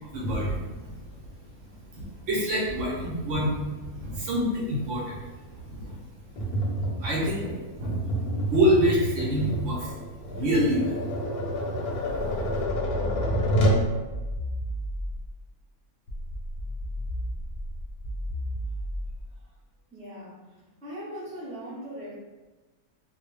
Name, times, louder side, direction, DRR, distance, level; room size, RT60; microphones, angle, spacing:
voice 1, 0.0-1.0 1.2-1.3 1.6-6.0 7.0-7.5 8.0-8.1 8.4-9.9 10.3-11.0 11.9-12.6, equal, 65° right, -4 dB, 0.9 m, -27 dB
Tap, 6.4-13.9, right 1 dB, 85° left, 1.1 m, -28 dB
sound 1, 12.1-15.4 16.1-19.4, equal, 60° left, 0.8 m, -34 dB
voice 2, 19.9-22.2, equal, 10° left, -10 dB, 0.4 m, -40 dB
2.4 x 2.0 x 3.1 m, 1.2 s
omnidirectional pair, 1.5 m